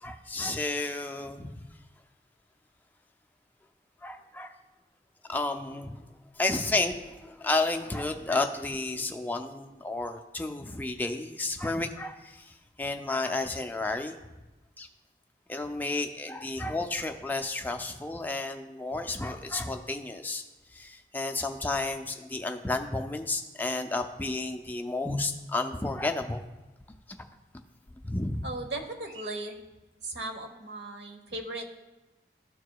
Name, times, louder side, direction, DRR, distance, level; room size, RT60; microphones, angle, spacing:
voice 1, 0.0-1.6 4.0-4.5 5.3-6.0 6.4-12.4 12.8-14.2 14.8-14.9 15.5-20.4 20.7-26.4 28.0-28.5, left 2 dB, 10° left, 5 dB, 0.4 m, -31 dB
voice 2, 28.4-29.6 30.0-31.8, right 2 dB, 85° right, 4 dB, 1.0 m, -37 dB
13.0 x 4.7 x 2.3 m, 1.1 s
head